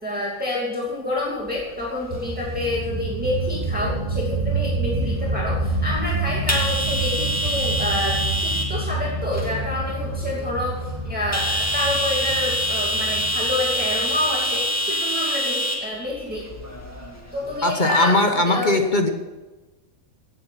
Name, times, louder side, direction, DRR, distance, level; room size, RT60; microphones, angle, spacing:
voice 1, 0.0-16.5 17.3-18.2 18.5-18.7, left 1 dB, 5° right, -4 dB, 2.6 m, -28 dB
sound 1, 1.5-17.6, equal, 10° left, 2.0 m, -28 dB
sound 2, 2.1-14.5, right 2 dB, 25° right, 1.3 m, -28 dB
voice 2, 17.6-19.1, left 2 dB, 35° left, 5 dB, 1.2 m, -19 dB
17.5 x 8.2 x 5.8 m, 1.2 s
omnidirectional pair, 1.4 m